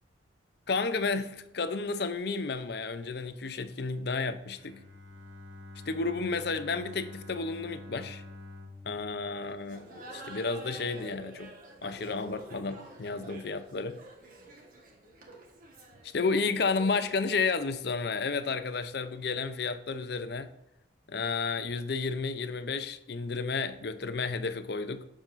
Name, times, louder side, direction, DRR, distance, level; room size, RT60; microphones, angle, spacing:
voice 1, 0.7-4.8 5.9-8.2 8.8-9.8 10.1-11.5 11.8-14.0 16.1-20.5 21.1-25.0, left 4 dB, 55° left, 11 dB, 0.6 m, -32 dB
Bowed string instrument, 4.5-10.5, left 2 dB, 85° right, 1.7 m, -48 dB
Laughter, 9.6-17.1, right 2 dB, 45° right, 1.4 m, -48 dB
7.4 x 7.2 x 2.6 m, 0.86 s
head